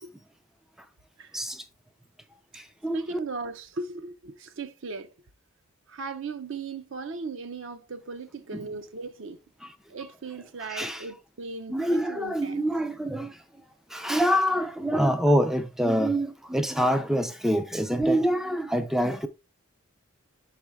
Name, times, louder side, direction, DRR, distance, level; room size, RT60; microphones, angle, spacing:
voice 1, 1.3-1.6 2.5-3.0 8.5-8.7 9.6-9.7 10.6-11.1 11.7-13.4 13.9-19.3, equal, ahead, 0.3 m, -26 dB
voice 2, 2.9-5.1 5.9-9.4 9.9-12.6, right 3 dB, 55° right, 0.6 m, -37 dB
6.2 x 4.3 x 3.5 m
head